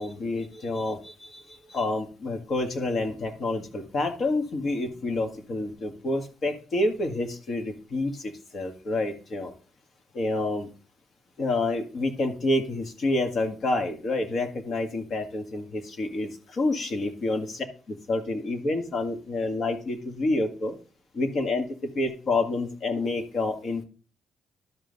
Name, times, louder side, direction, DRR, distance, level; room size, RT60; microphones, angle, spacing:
voice 1, 0.0-9.5 10.1-10.7 11.4-20.8 21.1-21.7 21.9-23.8, left 2 dB, 55° left, 6 dB, 1.8 m, -28 dB
12.0 x 5.4 x 4.0 m, 0.37 s
cardioid pair, 90°, 0 cm